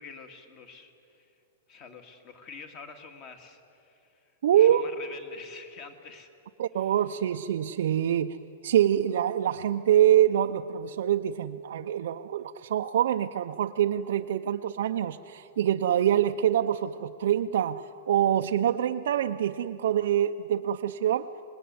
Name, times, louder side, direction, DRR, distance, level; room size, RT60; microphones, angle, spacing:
voice 1, 0.0-1.3 1.7-6.3 6.7-6.9, left 5 dB, 25° left, 7 dB, 2.0 m, -47 dB
voice 2, 4.4-4.8 6.6-8.4 8.6-21.3, right 10 dB, 60° right, 4 dB, 0.6 m, -25 dB
26.5 x 20.5 x 9.5 m, 2.7 s
supercardioid pair, 175°, 0 cm